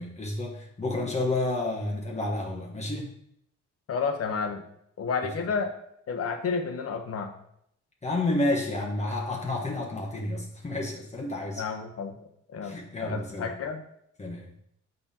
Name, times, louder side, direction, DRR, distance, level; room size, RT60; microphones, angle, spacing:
voice 1, 0.0-3.1 8.0-11.6 12.6-13.5 14.2-14.5, left 2 dB, 20° left, -1 dB, 1.2 m, -30 dB
voice 2, 3.9-4.6 5.0-5.7 6.1-7.3 11.6-12.2 12.5-12.7 13.0-13.8, left 5 dB, 50° left, 4 dB, 1.0 m, -30 dB
7.1 x 5.4 x 2.9 m, 0.72 s
cardioid pair, 90°, 30 cm